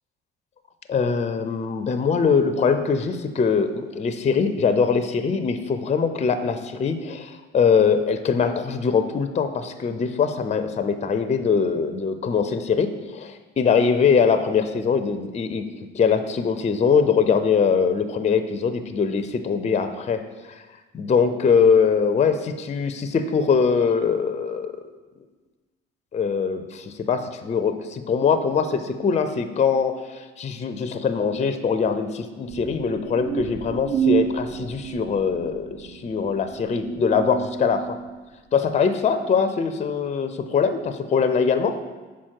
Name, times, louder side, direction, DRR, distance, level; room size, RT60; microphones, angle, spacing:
voice 1, 0.9-15.7 15.9-20.2 20.5-20.6 20.9-24.8 26.1-38.0 38.5-41.8, left 6 dB, 20° left, 9 dB, 0.5 m, -22 dB
sound 1, 32.5-38.2, right 9 dB, 30° right, 0.5 m, -30 dB
5.8 x 4.2 x 4.6 m, 1.3 s
hypercardioid pair, 55°, 31 cm